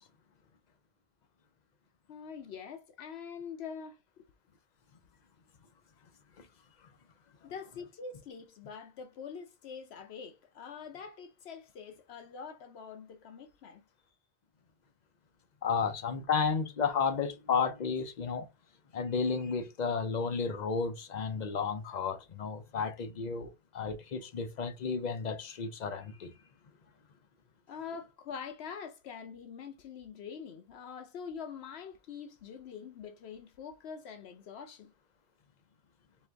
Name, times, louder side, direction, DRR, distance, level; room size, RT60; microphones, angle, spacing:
voice 1, 2.1-4.2 7.4-13.8 27.7-34.9, left 6 dB, 75° left, 0.9 m, -45 dB
voice 2, 15.6-18.5 18.9-26.3, left 5 dB, 50° left, 0.7 m, -32 dB
4.5 x 2.5 x 3.3 m
omnidirectional pair, 1.1 m